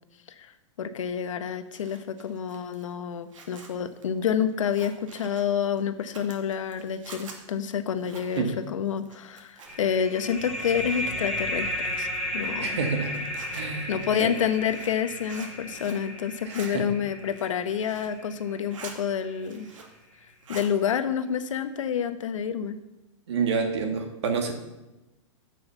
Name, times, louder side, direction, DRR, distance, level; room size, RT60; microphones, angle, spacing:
voice 1, 0.8-12.1 12.3-12.8 13.6-19.7 20.5-22.8, left 8 dB, 75° left, 10 dB, 1.0 m, -28 dB
Zipper (clothing), 1.5-10.0 10.3-11.3 11.8-16.1 16.3-16.7 17.2-18.2 18.5-19.0 19.3-20.0 20.3-20.7, right 4 dB, 80° right, 2.5 m, -47 dB
sound 1, 9.7-19.0, left 1 dB, ahead, 1.5 m, -34 dB
voice 2, 12.6-13.2 13.5-13.9 14.2-14.3 16.5-16.8 23.3-24.5, right 5 dB, 60° right, 4 dB, 2.0 m, -28 dB
10.5 x 6.3 x 7.2 m, 1.0 s
supercardioid pair, 175°, 16 cm